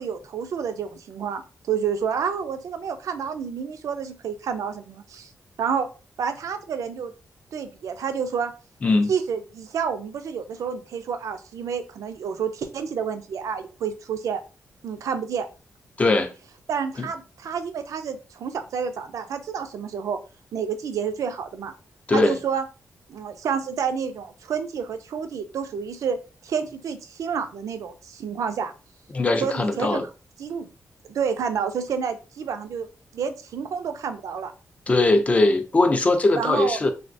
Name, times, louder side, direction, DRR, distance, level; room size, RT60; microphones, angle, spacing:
voice 1, 0.0-1.4 1.7-5.3 5.6-5.9 6.2-7.1 7.5-8.5 9.1-14.4 14.8-15.5 16.7-20.2 20.5-21.7 22.1-22.6 23.1-26.2 26.4-28.7 29.4-30.1 30.4-30.7 31.1-32.9 33.1-34.5 36.4-36.8, right 6 dB, 75° right, 0.4 m, -29 dB
voice 2, 8.8-9.1 16.0-16.3 22.1-22.4 29.1-30.1 34.9-36.9, left 2 dB, 25° left, 0.4 m, -20 dB
3.4 x 2.3 x 2.5 m
wide cardioid pair, 170°, 6 cm